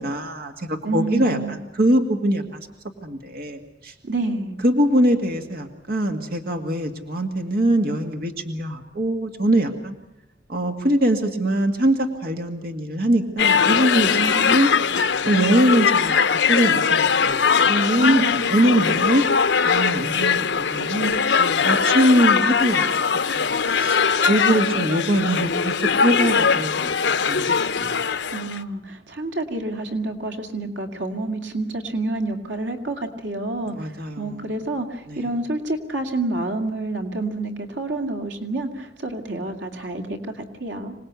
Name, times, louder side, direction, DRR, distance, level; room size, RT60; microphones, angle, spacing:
voice 1, 0.0-1.4 1.8-2.7 3.0-3.9 4.6-9.9 10.5-14.7 15.2-16.1 16.5-19.2 19.7-22.9 23.3-24.0 24.3-26.9 27.3-27.5 27.8-27.9 33.7-34.4 35.1-35.2, right 1 dB, 55° right, 5 dB, 2.0 m, -22 dB
voice 2, 0.8-1.6 4.0-4.6 14.1-14.7 18.0-18.5 28.3-40.9, right 2 dB, 90° right, 6 dB, 2.3 m, -28 dB
sound 1, 13.4-28.6, left 6 dB, 75° left, 0.9 m, -21 dB
26.0 x 19.0 x 8.3 m, 0.86 s
head